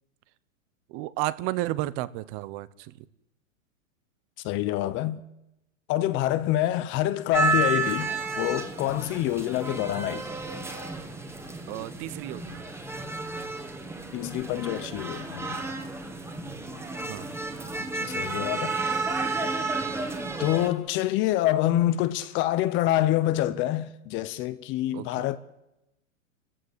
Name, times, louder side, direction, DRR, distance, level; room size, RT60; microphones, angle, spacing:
voice 1, 0.9-2.9 11.7-12.6 17.1-17.3 24.9-25.1, right 16 dB, 35° right, 1.0 m, -32 dB
voice 2, 4.4-5.2 5.9-10.3 14.1-15.6 17.9-18.7 20.4-25.4, left 14 dB, 30° left, 0.8 m, -26 dB
sound 1, 7.3-20.7, right 3 dB, 5° right, 1.8 m, -31 dB
29.5 x 15.0 x 8.2 m
hypercardioid pair, 145°, 41 cm